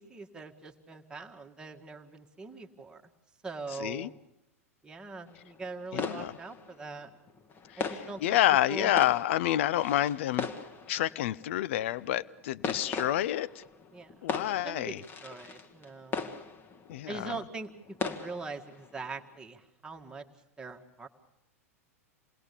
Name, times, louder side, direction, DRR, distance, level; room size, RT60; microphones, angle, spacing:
voice 1, 0.0-3.0 3.4-4.2 4.8-7.1 7.8-8.4 8.7-8.9 13.9-14.3 14.6-16.4 17.1-20.3 20.6-21.1, right 3 dB, 10° right, 2 dB, 2.0 m, -42 dB
sound 1, 5.3-19.4, left 5 dB, 25° left, 1.9 m, -40 dB
voice 2, 5.9-6.3 7.7-10.5 10.9-13.6 14.2-15.0 16.9-17.3, left 13 dB, 55° left, 18 dB, 0.8 m, -28 dB
28.0 x 19.5 x 7.0 m, 0.86 s
figure-of-eight pair, 95°, 8 cm